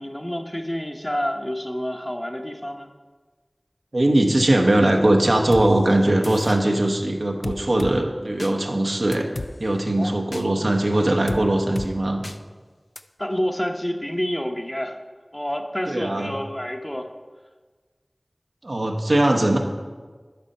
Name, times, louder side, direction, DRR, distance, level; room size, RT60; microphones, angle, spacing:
voice 1, 0.0-2.9 10.0-10.2 13.2-15.0 15.3-17.1, equal, 20° left, 4 dB, 0.7 m, -28 dB
voice 2, 3.9-9.3 9.6-12.2 15.9-16.3 18.6-19.6, right 1 dB, 85° right, 3 dB, 0.9 m, -20 dB
sound 1, 5.5-5.7 6.2-6.6 7.4-7.9 8.4-8.5 9.1-9.5 10.3-10.4 11.3-11.4 11.8-11.9 12.2-12.4 13.0-13.1, left 2 dB, 70° left, 0.4 m, -32 dB
11.5 x 4.1 x 5.4 m, 1.4 s
wide cardioid pair, 45°, 0 cm